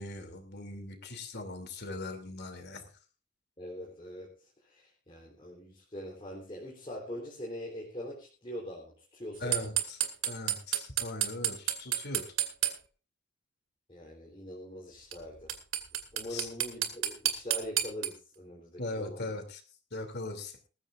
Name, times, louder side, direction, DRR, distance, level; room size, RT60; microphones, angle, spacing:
voice 1, 0.0-2.9 9.4-12.2 16.3-16.5 18.8-19.6 19.9-20.6, left 2 dB, 50° left, 7 dB, 2.7 m, -40 dB
voice 2, 3.6-9.7 13.9-15.5 16.1-19.3, equal, 25° left, -3 dB, 3.5 m, -43 dB
sound 1, 9.5-12.7 15.1-15.2 15.5-18.1, right 12 dB, 65° right, 2.3 m, -29 dB
20.0 x 14.5 x 2.5 m, 0.34 s
head